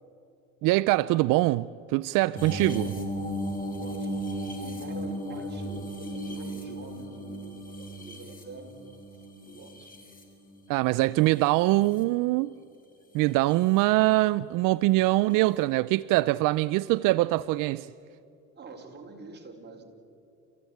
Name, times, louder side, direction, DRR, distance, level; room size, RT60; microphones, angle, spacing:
voice 1, 0.6-2.9 10.7-12.5 13.1-17.9, right 19 dB, 70° right, 0.5 m, -23 dB
sound 1, 2.4-10.7 11.3-12.0 13.2-13.6 15.3-15.4, equal, 25° left, 4.9 m, -36 dB
voice 2, 2.4-2.9 3.7-4.2 4.6-8.8 9.4-10.0 18.5-19.8, right 3 dB, 30° right, 4.6 m, -45 dB
30.0 x 15.5 x 9.3 m
supercardioid pair, 90°, 34 cm